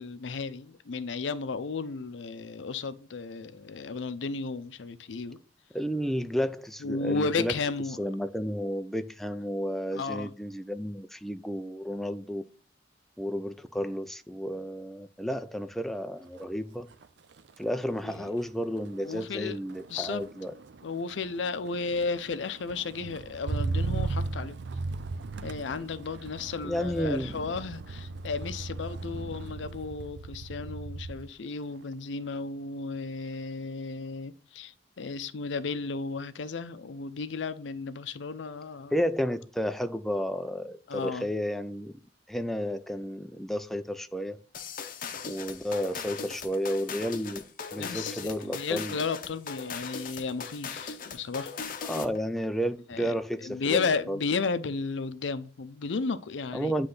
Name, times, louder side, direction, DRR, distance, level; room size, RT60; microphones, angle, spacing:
voice 1, 0.0-5.4 6.8-8.0 9.9-10.3 18.0-18.3 19.0-19.6 19.9-20.2 20.8-24.6 25.4-38.9 40.9-41.3 47.8-51.5 52.9-53.1 53.4-56.7, left 4 dB, 90° left, 0.6 m, -34 dB
voice 2, 5.7-7.5 8.0-12.4 13.2-16.9 17.6-20.5 26.6-27.4 38.9-42.0 42.3-44.4 45.2-47.4 47.7-49.0 51.8-54.2 56.5-56.9, equal, ahead, 0.3 m, -32 dB
Motor vehicle (road), 16.2-16.6 16.9-31.3 31.7-32.2, right 3 dB, 70° right, 0.5 m, -37 dB
sound 1, 44.5-52.2, left 5 dB, 50° left, 0.7 m, -39 dB
9.5 x 3.2 x 3.9 m
head